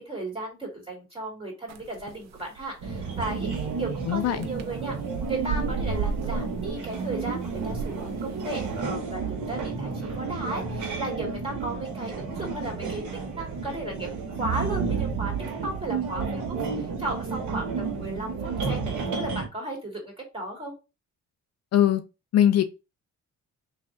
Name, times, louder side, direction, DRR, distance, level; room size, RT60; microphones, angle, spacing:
voice 1, 0.0-5.0 5.2-15.3 15.6-20.0 20.3-20.7, right 2 dB, 20° right, 2.4 m, -35 dB
sound 1, 1.7-8.8, right 5 dB, 60° right, 0.6 m, -36 dB
sound 2, 2.8-19.5, right 5 dB, 80° right, 1.2 m, -31 dB
voice 2, 4.1-4.5 21.7-22.0 22.3-22.6, left 11 dB, 55° left, 0.5 m, -20 dB
3.2 x 2.7 x 3.9 m
cardioid pair, 90°, 30 cm